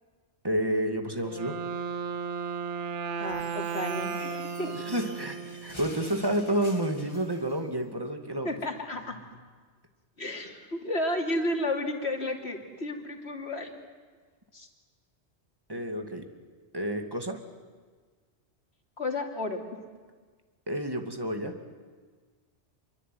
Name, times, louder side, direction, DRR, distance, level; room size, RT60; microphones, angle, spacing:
voice 1, 0.4-1.5 4.8-8.5 15.7-16.2 16.7-17.4 20.7-21.5, right 1 dB, 20° right, 5 dB, 2.4 m, -30 dB
Wind instrument woodwind instrument, 1.2-6.1, right 6 dB, 85° right, 1.3 m, -35 dB
voice 2, 3.2-4.7 8.4-9.4 10.2-13.8 14.5-14.7 19.0-19.6, left 1 dB, 65° left, 3 dB, 3.3 m, -32 dB
sound 1, 3.2-7.6, left 1 dB, 25° left, 2.3 m, -48 dB
27.0 x 23.5 x 9.4 m, 1.5 s
omnidirectional pair, 1.2 m